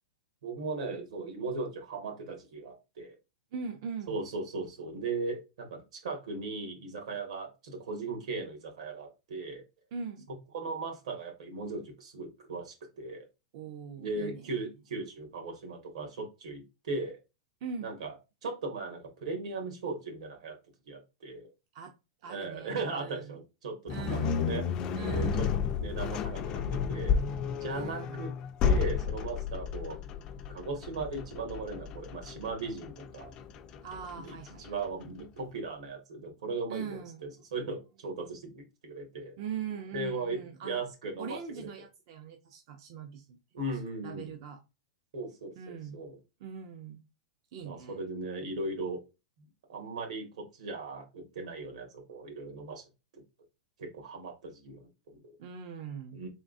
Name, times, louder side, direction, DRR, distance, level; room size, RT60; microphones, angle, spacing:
voice 1, 0.4-3.1 4.1-9.6 10.5-13.3 14.0-17.2 17.8-18.1 18.4-20.6 20.9-21.5 22.3-24.7 25.1-25.5 25.7-27.2 27.6-28.3 28.6-30.0 30.5-33.3 34.2-39.3 39.9-41.7 43.5-44.3 45.1-46.2 47.6-49.0 49.7-52.8 53.1-53.2 53.8-55.3 56.1-56.3, right 3 dB, 70° right, 3 dB, 1.7 m, -38 dB
voice 2, 3.5-4.2 9.9-10.3 13.5-14.5 17.6-18.0 21.7-21.9 22.2-23.4 23.9-24.4 24.9-25.5 27.7-28.2 33.8-34.9 36.7-37.3 39.4-40.9 41.2-43.4 43.7-44.6 45.6-46.0 46.4-47.0 47.5-48.0 55.4-56.3, right 6 dB, 40° right, 5 dB, 0.5 m, -41 dB
sound 1, 23.9-35.0, left 6 dB, 20° left, 0.3 m, -32 dB
3.9 x 3.6 x 2.5 m, 0.26 s
supercardioid pair, 170°, 4 cm